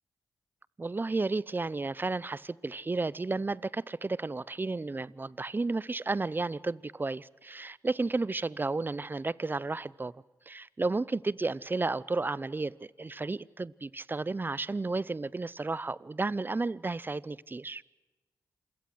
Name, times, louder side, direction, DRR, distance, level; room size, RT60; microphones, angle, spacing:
voice 1, 0.8-10.1 10.5-17.8, right 3 dB, 30° right, 0.7 m, -32 dB
27.5 x 17.0 x 7.9 m
cardioid pair, 55°, 7 cm